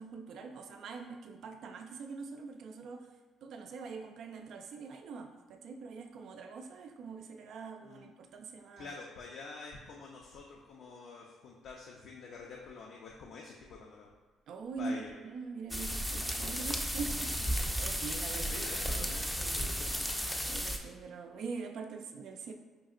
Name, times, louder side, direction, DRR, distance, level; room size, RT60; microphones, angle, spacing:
voice 1, 0.0-3.1 3.4-8.9 14.5-18.7 19.0-19.6 20.5-22.5, right 4 dB, 70° right, 5 dB, 0.3 m, -43 dB
voice 2, 8.7-14.1 14.8-15.1 18.4-20.0, left 4 dB, 70° left, -1 dB, 0.4 m, -47 dB
sound 1, 15.7-20.8, equal, 5° left, 0.4 m, -34 dB
5.0 x 2.8 x 2.4 m, 1.4 s
cardioid pair, 90°, 0 cm